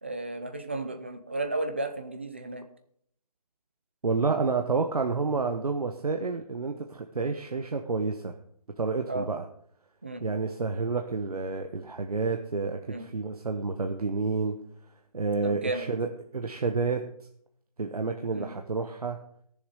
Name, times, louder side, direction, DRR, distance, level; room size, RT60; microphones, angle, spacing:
voice 1, 0.0-2.6 9.1-9.3 10.0-10.2 12.9-13.0 15.4-15.9 18.3-18.5, right 2 dB, 20° right, 8 dB, 0.6 m, -33 dB
voice 2, 4.0-8.3 8.8-9.4 10.2-14.6 15.1-17.0 17.8-19.2, right 4 dB, 70° right, 4 dB, 1.1 m, -29 dB
14.5 x 7.1 x 5.3 m, 0.66 s
hypercardioid pair, 175°, 20 cm